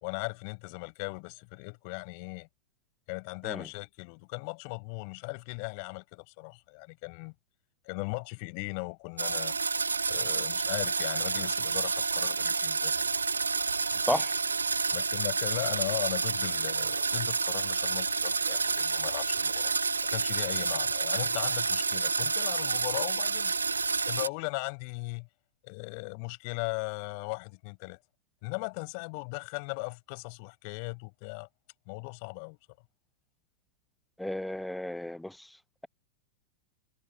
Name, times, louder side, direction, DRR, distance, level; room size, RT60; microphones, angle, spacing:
voice 1, 0.0-2.5 3.1-7.3 7.8-9.5 10.1-13.2 14.1-14.3 14.9-19.7 20.0-25.3 25.6-28.0 28.4-31.5 31.9-32.6, left 37 dB, 45° left, 4.5 m, -38 dB
sound 1, 9.2-24.3, right 4 dB, 75° right, 0.8 m, -29 dB
voice 2, 34.2-35.5, left 1 dB, 5° left, 0.8 m, -33 dB
figure-of-eight pair, 90°, 0 cm